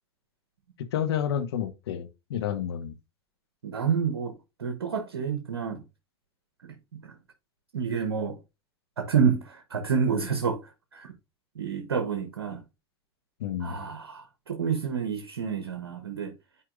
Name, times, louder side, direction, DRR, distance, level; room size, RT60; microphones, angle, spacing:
voice 1, 0.9-2.9 13.4-13.8, left 9 dB, 75° left, 1.0 m, -30 dB
voice 2, 3.6-4.3 4.6-5.8 6.6-7.1 7.7-8.4 9.0-10.6 10.9-11.1 11.5-12.6 13.6-16.3, right 6 dB, 90° right, 1.0 m, -29 dB
9.7 x 4.7 x 2.5 m
hypercardioid pair, 90°, 13 cm